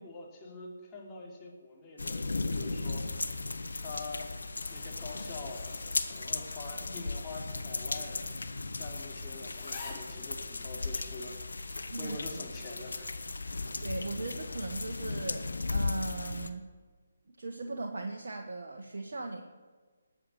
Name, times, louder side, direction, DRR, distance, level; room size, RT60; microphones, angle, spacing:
voice 1, 0.0-3.3 3.8-4.3 4.7-5.7 6.0-8.2 8.8-11.4 12.0-13.1 13.4-13.8, left 3 dB, 20° left, -3 dB, 3.4 m, -45 dB
sound 1, 2.0-16.5, left 3 dB, 70° left, 1.2 m, -36 dB
sound 2, 4.2-6.7 7.0-7.1 8.0-8.1 8.4-8.5 9.1-9.2 9.4-10.1 10.8-10.9, left 4 dB, 35° left, 3.4 m, -48 dB
voice 2, 11.9-12.4 13.8-16.7 17.3-19.4, right 3 dB, 60° right, 2 dB, 1.4 m, -38 dB
20.0 x 7.8 x 7.0 m, 1.4 s
figure-of-eight pair, 145°, 0 cm